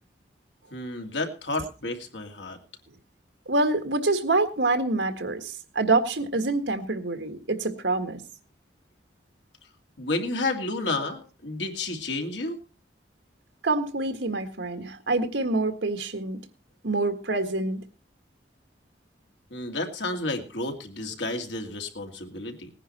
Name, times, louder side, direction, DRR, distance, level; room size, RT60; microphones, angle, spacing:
voice 1, 0.7-2.6 10.0-12.6 19.5-22.7, left 2 dB, 90° left, 4 dB, 2.5 m, -31 dB
voice 2, 3.5-8.2 13.6-16.4 16.8-17.8, right 2 dB, 90° right, 8 dB, 1.7 m, -26 dB
19.0 x 10.0 x 4.3 m, 0.34 s
head